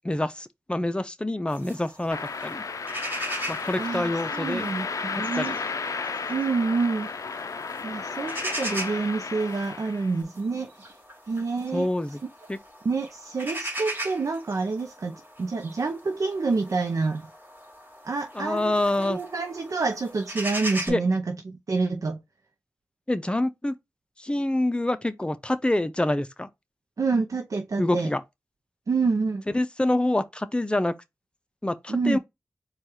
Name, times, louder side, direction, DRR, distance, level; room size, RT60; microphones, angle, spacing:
voice 1, 0.1-2.6 3.5-4.7 5.4-5.6 11.7-12.2 12.5-12.6 18.4-19.2 20.9-21.0 23.1-23.8 24.2-26.5 27.8-28.2 29.5-30.9 31.6-32.2, left 1 dB, 15° left, 0.6 m, -26 dB
sound 1, 1.5-20.9, right 1 dB, 30° right, 2.4 m, -39 dB
sound 2, 2.1-10.2, left 4 dB, 70° left, 0.4 m, -33 dB
voice 2, 3.8-5.6 6.3-7.1 7.8-11.0 11.3-11.9 12.8-17.2 18.0-22.2 27.0-28.1 28.9-29.4 31.9-32.2, right 4 dB, 70° right, 0.6 m, -28 dB
4.4 x 2.4 x 4.8 m
wide cardioid pair, 70°, 6 cm